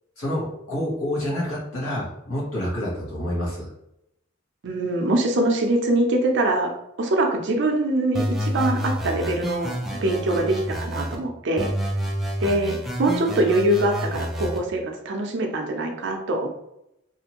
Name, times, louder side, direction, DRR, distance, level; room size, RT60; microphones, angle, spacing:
voice 1, 0.2-3.7, left 1 dB, 80° left, -5 dB, 1.2 m, -28 dB
voice 2, 4.6-6.7 7.0-11.7 12.4-16.5, right 1 dB, 55° right, 3 dB, 0.5 m, -23 dB
sound 1, 8.1-11.2 11.6-14.6, equal, ahead, 0.3 m, -28 dB
2.7 x 2.5 x 2.9 m, 0.83 s
head